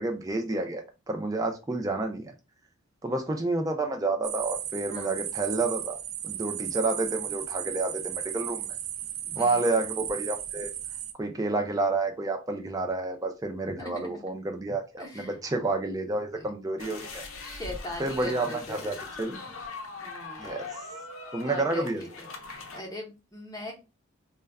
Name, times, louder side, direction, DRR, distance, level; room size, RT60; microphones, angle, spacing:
voice 1, 0.0-2.3 3.0-6.0 6.2-8.7 9.4-10.7 11.2-17.2 18.0-19.4 20.4-20.6 21.3-22.0, right 2 dB, 15° right, 4 dB, 0.4 m, -30 dB
sound 1, 4.2-11.1, right 11 dB, 85° right, 0.4 m, -35 dB
voice 2, 4.9-5.2 9.3-9.6 13.8-14.1 15.0-15.4 16.4-16.5 17.4-18.9 20.0-20.4 21.4-22.3 22.7-23.7, left 1 dB, 15° left, -1 dB, 0.7 m, -40 dB
sound 2, 16.8-22.8, left 3 dB, 85° left, 0.6 m, -41 dB
2.2 x 2.1 x 3.5 m, 0.28 s
head